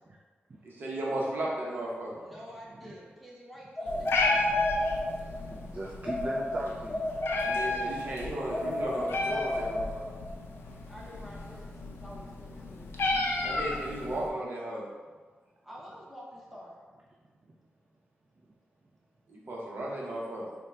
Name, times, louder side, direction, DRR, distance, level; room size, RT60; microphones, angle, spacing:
voice 1, 0.6-2.3 7.4-10.1 13.4-14.9 19.3-20.6, right 1 dB, 60° right, -4 dB, 0.9 m, -35 dB
voice 2, 2.2-4.5 10.5-10.6 10.9-12.9 15.6-16.8, equal, ahead, -5 dB, 0.8 m, -48 dB
sound 1, 3.8-5.5 6.0-8.0 8.5-10.4, left 1 dB, 15° left, 1.2 m, -33 dB
Meow, 3.9-14.3, left 2 dB, 90° left, 0.5 m, -33 dB
voice 3, 4.1-7.1 12.8-13.0 18.4-18.5, right 2 dB, 35° right, -2 dB, 0.3 m, -42 dB
3.6 x 2.2 x 4.3 m, 1.4 s
wide cardioid pair, 130°, 4 cm